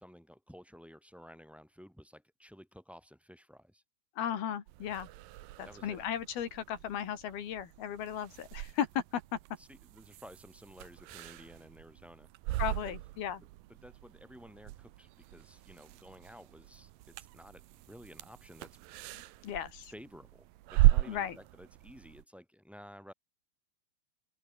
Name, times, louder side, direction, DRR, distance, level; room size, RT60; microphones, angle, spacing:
voice 1, 0.0-3.8 5.6-6.0 9.6-12.3 12.7-13.0 13.7-18.8 19.9-23.1, equal, ahead, 6.0 m, -53 dB
voice 2, 4.2-5.1 5.6-8.9 9.1-9.2 12.6-13.4 19.4-19.9 21.1-21.4, left 9 dB, 90° left, 4.4 m, -36 dB
sound 1, 4.7-22.2, right 16 dB, 75° right, 2.4 m, -36 dB
open air
omnidirectional pair, 4.2 m